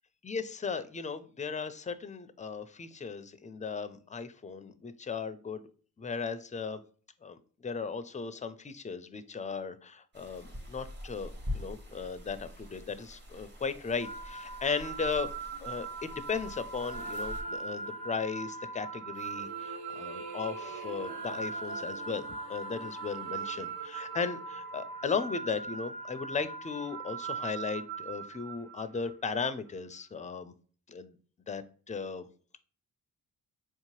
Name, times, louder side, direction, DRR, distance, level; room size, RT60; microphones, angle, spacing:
voice 1, 0.2-5.6 6.0-6.8 7.2-15.3 15.6-30.5 30.9-31.1 31.5-32.3, left 5 dB, 20° left, 12 dB, 0.4 m, -36 dB
sound 1, 10.1-17.4, left 1 dB, 25° right, 1.2 m, -44 dB
sound 2, 14.0-29.1, right 4 dB, 85° right, 1.8 m, -40 dB
sound 3, 16.7-18.4 19.1-25.2, right 5 dB, 65° right, 0.6 m, -47 dB
4.4 x 2.8 x 3.0 m, 0.43 s
cardioid pair, 75°, 41 cm